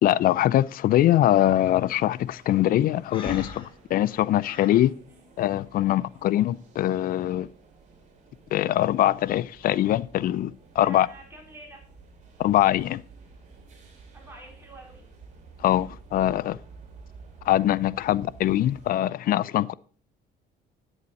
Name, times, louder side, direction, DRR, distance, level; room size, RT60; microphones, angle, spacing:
voice 1, 0.0-4.9 5.4-7.5 8.5-11.1 12.4-13.0 15.6-16.6 17.5-19.7, left 13 dB, 60° left, 0.4 m, -23 dB
sound 1, 1.1-18.9, right 4 dB, 45° right, 3.2 m, -51 dB
Breathing, 3.1-4.8, left 4 dB, 30° left, 1.9 m, -39 dB
voice 2, 5.8-6.2 10.8-11.8 14.1-15.0 18.0-18.2, right 1 dB, 15° right, 4.1 m, -48 dB
9.5 x 8.0 x 4.2 m
cardioid pair, 110°, 17 cm